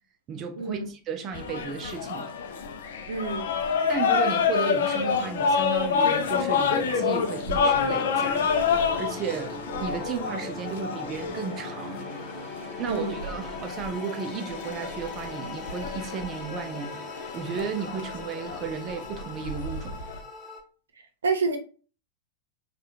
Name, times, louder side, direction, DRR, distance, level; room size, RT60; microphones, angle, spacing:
voice 1, 0.3-2.3 3.9-12.1 12.8-20.0, right 6 dB, 30° right, 0.4 m, -34 dB
sound 1, 1.3-20.2, left 6 dB, 60° left, 0.5 m, -28 dB
sound 2, 2.3-20.6, left 2 dB, 15° left, 1.5 m, -41 dB
voice 2, 3.1-3.5 12.8-13.2 21.2-21.6, right 4 dB, 70° right, 0.7 m, -28 dB
4.8 x 2.4 x 2.7 m
figure-of-eight pair, 90°, 0 cm